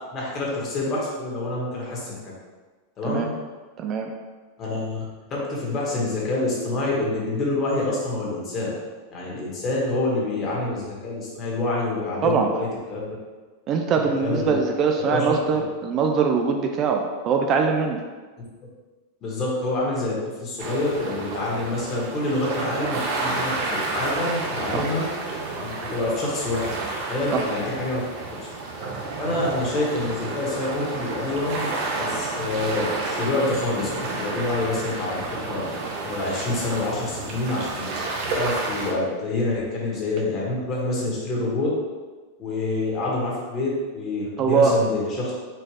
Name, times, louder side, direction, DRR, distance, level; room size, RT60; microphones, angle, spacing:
voice 1, 0.1-2.2 3.0-3.3 4.6-5.0 5.3-8.7 9.1-13.1 14.2-14.5 15.0-15.6 19.2-25.0 25.6-26.7 27.1-28.0 28.3-28.4 29.2-31.7 32.0-35.6 36.0-37.9 38.3-41.7 42.4-45.3, left 2 dB, 30° left, -4 dB, 1.5 m, -27 dB
voice 2, 3.8-4.1 12.2-12.5 13.7-18.0 24.7-24.9 27.3-27.4 44.4-44.8, right 5 dB, 35° right, 4 dB, 0.4 m, -22 dB
sound 1, 20.6-38.9, right 3 dB, 50° right, 0.9 m, -30 dB
4.4 x 2.4 x 4.8 m, 1.4 s
supercardioid pair, 130°, 0 cm